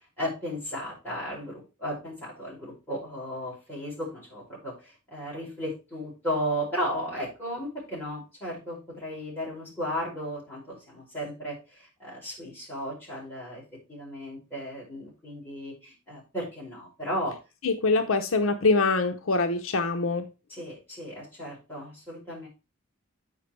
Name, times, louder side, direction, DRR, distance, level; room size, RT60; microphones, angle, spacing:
voice 1, 0.2-13.6 13.9-17.4 20.5-22.5, equal, 10° left, 5.4 m, -35 dB
voice 2, 17.6-20.3, left 3 dB, 70° left, 0.7 m, -24 dB
8.3 x 5.2 x 4.5 m
head